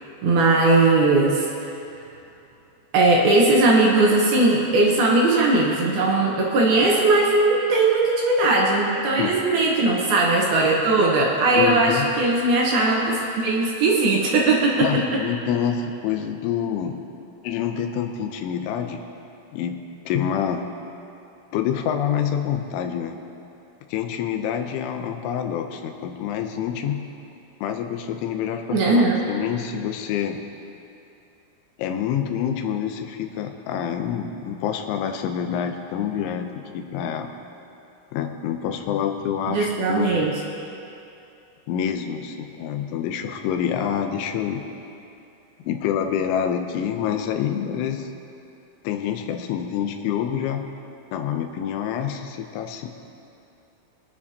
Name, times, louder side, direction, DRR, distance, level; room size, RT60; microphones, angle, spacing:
voice 1, 0.2-1.4 2.9-14.9 28.7-29.2 39.5-40.3, right 2 dB, 65° right, -3 dB, 2.7 m, -19 dB
voice 2, 11.6-12.1 14.8-17.0 17.4-19.0 19.5-20.7 21.5-23.2 23.9-27.0 27.6-30.4 31.8-37.3 38.1-40.2 41.7-44.6 45.6-48.1 48.8-50.6 51.1-52.9, left 8 dB, 85° left, 5 dB, 3.2 m, -27 dB
23.0 x 9.4 x 2.8 m, 2.7 s
omnidirectional pair, 5.4 m